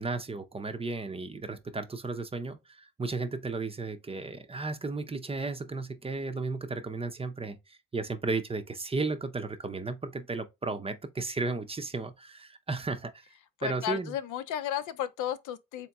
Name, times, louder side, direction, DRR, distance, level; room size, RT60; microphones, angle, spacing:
voice 1, 0.0-13.3 13.6-14.2, right 3 dB, 20° right, 0.6 m, -34 dB
voice 2, 13.6-15.9, left 10 dB, 80° left, 0.6 m, -34 dB
3.6 x 3.0 x 3.4 m
cardioid pair, 90°, 30 cm